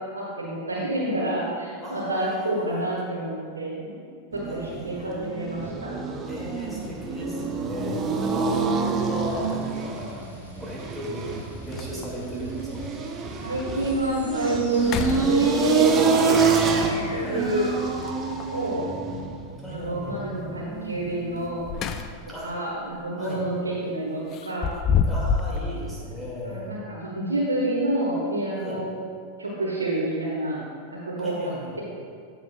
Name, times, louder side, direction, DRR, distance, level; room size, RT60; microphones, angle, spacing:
voice 1, 0.1-3.9 4.3-5.9 13.4-16.2 17.1-17.7 18.5-18.9 19.7-21.6 22.4-24.7 26.4-28.9 29.4-30.6 30.9-31.8, right 1 dB, 75° right, -6 dB, 1.5 m, -28 dB
voice 2, 1.8-2.7 4.5-5.3 6.3-10.1 10.6-12.9 16.8-17.5 19.6-20.2 22.3-22.6 23.2-23.4 25.0-26.8 28.5-28.8 31.2-31.8, equal, ahead, -7 dB, 2.3 m, -37 dB
sound 1, 4.3-21.6, right 4 dB, 25° right, 0.8 m, -27 dB
sound 2, 9.0-9.1 10.8-10.9 11.3-11.4 11.7-12.3 12.8-12.9 13.5-13.6 14.0-14.3 14.8-15.8 17.9-18.6 21.4-22.4 22.8-23.0 24.3-25.6, left 6 dB, 35° left, 0.5 m, -28 dB
sound 3, 9.2-19.0, equal, 80° left, 2.4 m, -44 dB
13.5 x 7.9 x 2.4 m, 2.2 s
figure-of-eight pair, 90°, 0 cm